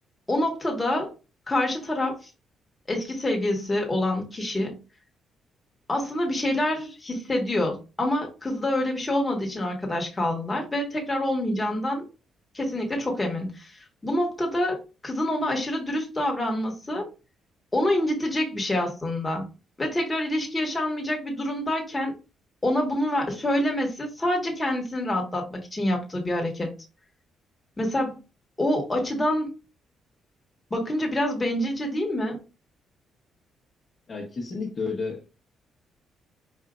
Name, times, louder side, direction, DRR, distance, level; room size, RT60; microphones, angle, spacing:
voice 1, 0.3-1.1 1.5-2.3 2.9-4.8 5.9-12.0 12.5-17.1 17.7-19.5 19.8-22.2 22.6-26.7 27.8-28.2 28.6-29.5 30.7-32.4, left 1 dB, 20° left, 1.3 m, -26 dB
voice 2, 34.1-35.3, left 4 dB, 40° left, 0.9 m, -31 dB
4.9 x 2.7 x 2.3 m
cardioid pair, 90°, 0 cm